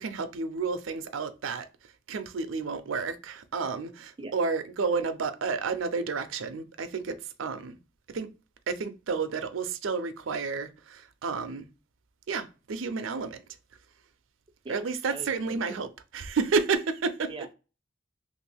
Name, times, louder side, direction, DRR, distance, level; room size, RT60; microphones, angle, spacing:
voice 1, 0.0-1.7 2.1-7.8 8.1-8.3 8.7-11.7 12.3-13.4 14.7-17.3, right 4 dB, 80° right, 0.5 m, -31 dB
voice 2, 15.1-15.8 17.3-17.5, right 3 dB, 25° right, 0.4 m, -41 dB
2.9 x 2.6 x 3.3 m
head